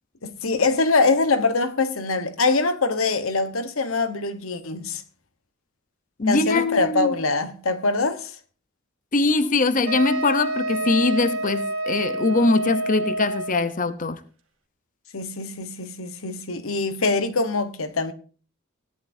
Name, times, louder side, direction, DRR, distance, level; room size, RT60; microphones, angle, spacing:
voice 1, 0.2-5.0 6.3-8.4 15.1-18.1, left 3 dB, 75° left, 1.2 m, -23 dB
voice 2, 6.2-7.1 9.1-14.2, left 3 dB, 40° left, 0.8 m, -22 dB
Wind instrument woodwind instrument, 9.9-13.7, right 1 dB, 70° right, 1.7 m, -28 dB
17.5 x 11.0 x 2.7 m
head